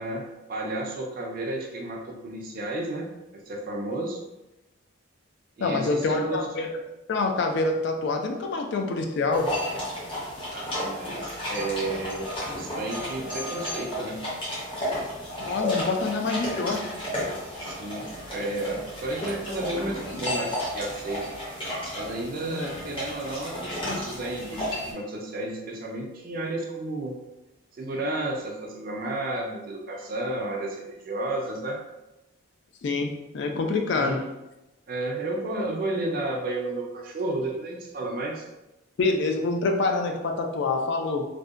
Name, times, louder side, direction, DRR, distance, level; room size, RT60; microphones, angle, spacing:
voice 1, 0.0-4.2 5.6-6.5 10.5-14.2 17.6-21.3 21.9-27.2 27.8-31.8 33.9-34.2 34.9-38.4, right 2 dB, 45° right, 0 dB, 0.4 m, -32 dB
voice 2, 5.6-6.7 7.1-9.5 15.4-16.9 22.4-22.8 32.8-34.2 39.0-41.3, left 3 dB, 55° left, 3 dB, 0.3 m, -26 dB
sound 1, 9.3-24.9, left 1 dB, 25° left, 0.6 m, -33 dB
2.6 x 2.1 x 2.4 m, 0.98 s
head